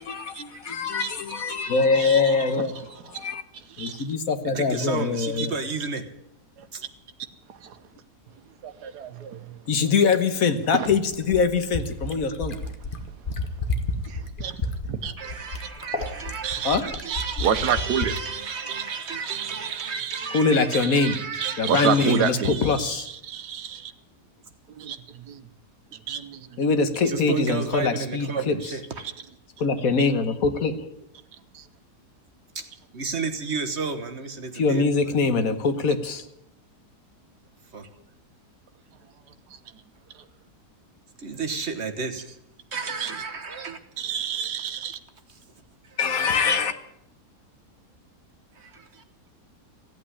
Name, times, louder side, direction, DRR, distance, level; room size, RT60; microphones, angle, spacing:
voice 1, 0.0-2.8 3.1-3.4 3.8-5.5 9.7-12.6 16.6-16.9 20.3-21.2 21.6-23.1 26.6-28.5 29.6-31.0 34.5-36.2 46.0-46.7, left 4 dB, 60° left, 9 dB, 1.5 m, -23 dB
voice 2, 0.5-1.2 1.5-2.2 4.4-6.1 6.7-6.8 15.2-22.4 27.0-29.1 32.5-34.8 37.7-37.9 41.2-42.4 42.7-43.8 45.3-45.4 45.8-46.0 48.5-49.0, right 4 dB, 45° right, 8 dB, 1.4 m, -33 dB
voice 3, 2.0-2.3 3.1-3.3 3.8-4.0 5.4-5.5 6.6-6.7 7.6-7.8 8.6-9.5 10.7-10.9 14.1-15.1 16.4-16.8 17.1-20.3 20.7-23.9 24.7-25.4 26.1-26.6 31.5-31.6 43.0-43.1 44.0-45.0, right 8 dB, 80° right, 9 dB, 1.5 m, -30 dB
Fill (with liquid), 10.1-18.2 19.5-19.6, left 2 dB, 35° left, 1.3 m, -31 dB
15.5 x 8.7 x 9.8 m, 0.78 s
omnidirectional pair, 1.7 m